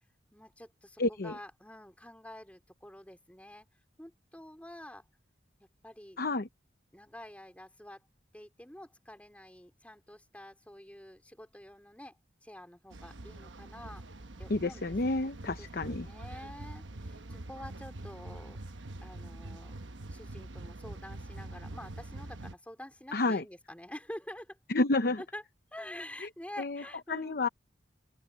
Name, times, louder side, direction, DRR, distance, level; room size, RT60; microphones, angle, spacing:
voice 1, 0.3-3.7 4.0-5.1 5.6-6.2 6.9-8.0 8.3-14.0 14.4-15.0 15.4-18.7 19.0-19.8 20.1-24.6 25.2-25.4 25.7-27.4, left 1 dB, 5° left, 4.2 m, -48 dB
voice 2, 1.0-1.3 6.2-6.5 14.5-16.1 23.1-23.4 24.7-25.2 26.6-26.8 27.1-27.5, left 2 dB, 55° left, 0.8 m, -30 dB
sound 1, 12.9-22.5, right 2 dB, 75° right, 1.1 m, -44 dB
open air
head